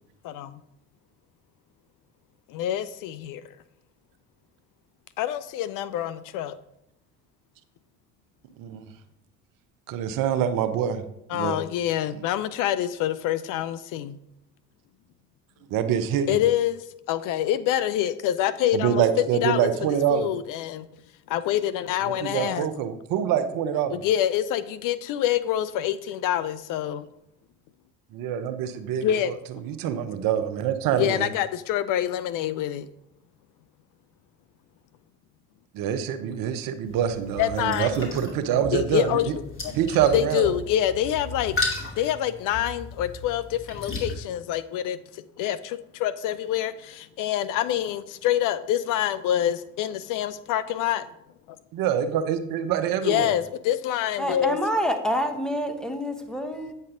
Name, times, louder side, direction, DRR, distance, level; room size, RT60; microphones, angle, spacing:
voice 1, 0.2-0.6 2.5-3.6 5.2-6.6 11.3-14.2 16.3-19.0 19.4-19.7 20.1-20.9 21.3-22.7 23.9-27.1 29.0-29.3 30.9-32.9 37.4-38.0 38.7-39.7 40.1-41.6 42.0-51.1 53.0-54.6, left 11 dB, 55° left, 14 dB, 0.4 m, -26 dB
voice 2, 9.9-11.0 11.3-11.6 15.7-16.4 18.7-20.3 22.0-24.0 28.1-29.3 29.6-31.3 35.7-39.3 39.7-40.5 51.7-53.3, right 9 dB, 60° right, 10 dB, 0.8 m, -25 dB
sound 1, 36.9-44.1, left 2 dB, 30° left, 2.7 m, -35 dB
voice 3, 54.2-56.7, equal, ahead, 5 dB, 1.2 m, -27 dB
8.8 x 5.4 x 3.8 m, 0.81 s
hypercardioid pair, 60°, 39 cm